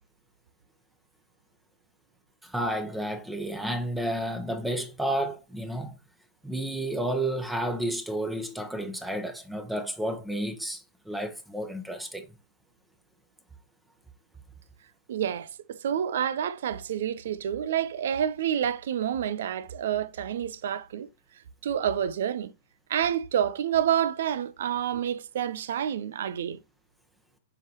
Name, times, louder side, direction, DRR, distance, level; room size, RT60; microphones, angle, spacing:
voice 1, 2.4-5.9 6.4-12.3, right 1 dB, 5° right, 1.1 m, -31 dB
voice 2, 15.1-21.1 21.3-22.5 22.9-26.6, right 9 dB, 65° right, 0.6 m, -28 dB
7.3 x 5.0 x 3.0 m
hypercardioid pair, 105°, 0 cm